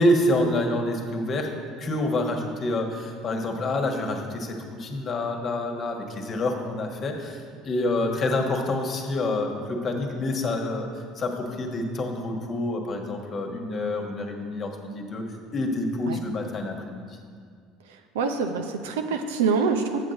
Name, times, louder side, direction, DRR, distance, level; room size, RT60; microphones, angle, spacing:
voice 1, 0.0-1.5 1.8-15.2 15.5-17.2, left 1 dB, 40° left, 3 dB, 1.3 m, -27 dB
voice 2, 17.9-20.1, right 5 dB, 75° right, 6 dB, 0.6 m, -26 dB
8.3 x 7.6 x 4.0 m, 2.1 s
hypercardioid pair, 65°, 0 cm